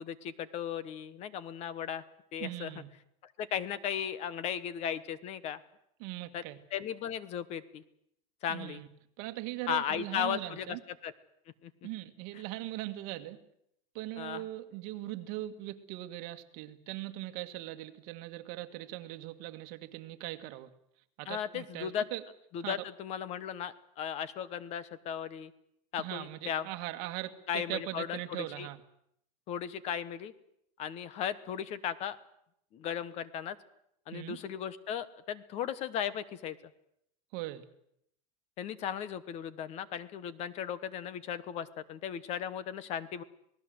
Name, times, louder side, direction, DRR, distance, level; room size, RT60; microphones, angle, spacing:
voice 1, 0.0-2.0 2.3-2.7 3.2-5.6 6.3-6.4 6.7-7.8 8.4-8.8 9.7-10.8 11.0-11.1 11.6-11.7 14.2-14.4 21.3-22.1 22.5-25.5 25.9-26.7 27.5-28.7 29.5-30.3 30.8-32.2 32.7-33.6 34.1-36.6 38.6-43.2, left 9 dB, 35° left, 17 dB, 1.1 m, -36 dB
voice 2, 2.4-2.9 6.0-6.6 8.5-8.9 9.2-10.8 11.8-13.4 13.9-20.7 21.2-22.2 22.6-22.8 26.0-28.8 34.1-34.4 37.3-37.7, right 16 dB, 55° right, 8 dB, 1.8 m, -40 dB
27.5 x 18.5 x 7.9 m, 0.73 s
cardioid pair, 170°, 18 cm